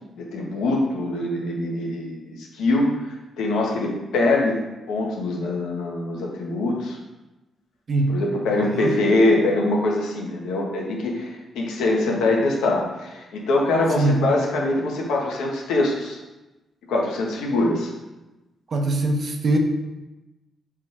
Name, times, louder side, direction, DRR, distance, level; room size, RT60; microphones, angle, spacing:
voice 1, 0.2-3.1 3.4-4.5 4.9-7.0 8.1-16.2 16.9-17.9, left 2 dB, 75° left, -1 dB, 1.5 m, -23 dB
voice 2, 7.9-8.2 8.6-9.0 14.0-14.2 18.7-19.6, right 2 dB, 55° right, 3 dB, 1.1 m, -22 dB
7.5 x 3.8 x 4.7 m, 1.0 s
hypercardioid pair, 45°, 0 cm